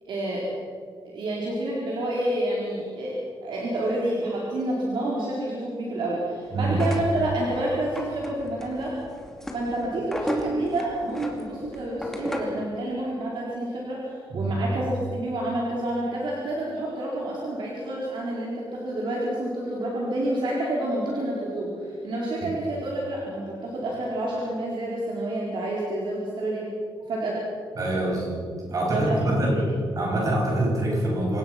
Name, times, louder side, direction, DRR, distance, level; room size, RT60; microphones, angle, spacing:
voice 1, 0.1-0.5 1.0-9.0 9.5-26.6 27.1-27.4 28.0-28.2 28.6-29.7, right 1 dB, 60° right, -4 dB, 4.4 m, -29 dB
sound 1, 6.7-12.7, equal, 5° left, 2.5 m, -34 dB
voice 2, 27.8-28.4 28.7-29.6 30.0-31.4, right 1 dB, 40° right, -3 dB, 7.8 m, -25 dB
27.5 x 17.5 x 6.0 m, 2.3 s
wide cardioid pair, 175°, 9 cm